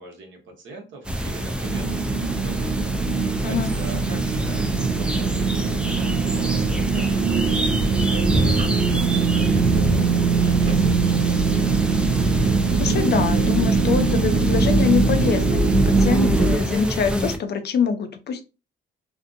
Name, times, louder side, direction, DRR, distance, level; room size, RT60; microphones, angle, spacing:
voice 1, 0.0-2.9 3.5-11.6, right 3 dB, 75° right, 2 dB, 1.0 m, -42 dB
sound 1, 1.0-17.4, equal, 5° right, 0.4 m, -26 dB
sound 2, 1.6-16.6, right 4 dB, 90° right, 0.5 m, -22 dB
sound 3, 7.6-16.4, right 2 dB, 40° right, 1.4 m, -47 dB
voice 2, 12.7-18.4, left 6 dB, 55° left, 8 dB, 0.6 m, -24 dB
2.6 x 2.5 x 2.5 m, 0.30 s
cardioid pair, 90°, 20 cm